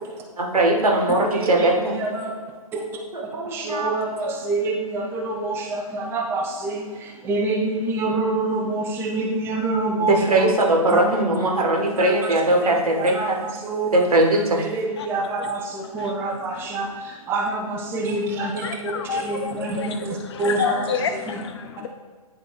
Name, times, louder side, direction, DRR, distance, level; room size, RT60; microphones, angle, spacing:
voice 1, 0.4-1.9 3.1-3.9 4.2-4.3 10.0-13.4 13.9-14.6, right 1 dB, 75° right, 1.6 m, -20 dB
voice 2, 1.2-2.3 2.7-2.8 3.4-10.5 10.9-11.0 12.0-12.7 13.0-14.1 14.6-20.9, right 2 dB, 10° right, 0.6 m, -27 dB
voice 3, 18.4-21.9, left 6 dB, 45° left, 0.6 m, -29 dB
10.0 x 3.6 x 3.3 m
figure-of-eight pair, 125°, 19 cm